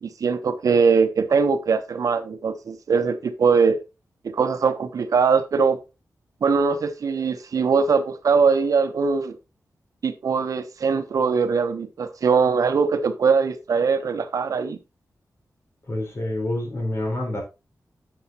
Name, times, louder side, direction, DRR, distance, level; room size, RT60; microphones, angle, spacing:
voice 1, 0.0-3.8 4.2-5.8 6.4-9.4 10.0-14.8, right 5 dB, 70° right, 1.1 m, -21 dB
voice 2, 15.9-17.4, left 1 dB, 45° left, 4.6 m, -27 dB
10.5 x 7.1 x 3.0 m
wide cardioid pair, 170°, 6 cm